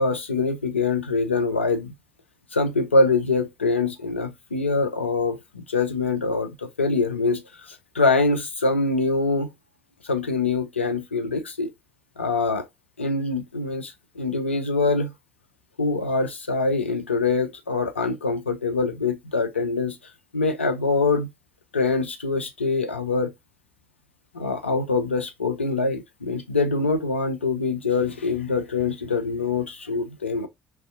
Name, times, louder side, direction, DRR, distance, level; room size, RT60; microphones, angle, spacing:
voice 1, 0.0-1.9 2.5-9.5 10.0-11.7 12.2-12.7 13.0-15.1 15.8-20.0 20.3-21.3 21.7-23.3 24.3-30.5, left 3 dB, 85° left, 0.4 m, -24 dB
2.4 x 2.1 x 2.3 m
figure-of-eight pair, 55°, 6 cm